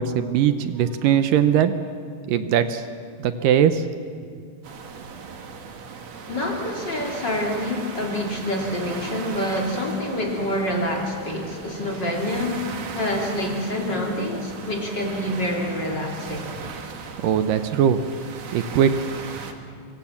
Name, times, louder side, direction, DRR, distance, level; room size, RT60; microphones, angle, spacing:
voice 1, 0.0-1.7 2.3-2.8 3.2-3.9 17.2-18.0 18.5-18.9, right 9 dB, 75° right, 10 dB, 2.1 m, -20 dB
sound 1, 4.6-19.5, right 5 dB, 50° right, 2.3 m, -38 dB
voice 2, 6.3-16.5, left 1 dB, 30° left, 0 dB, 3.1 m, -27 dB
26.0 x 25.0 x 7.3 m, 2.2 s
omnidirectional pair, 4.7 m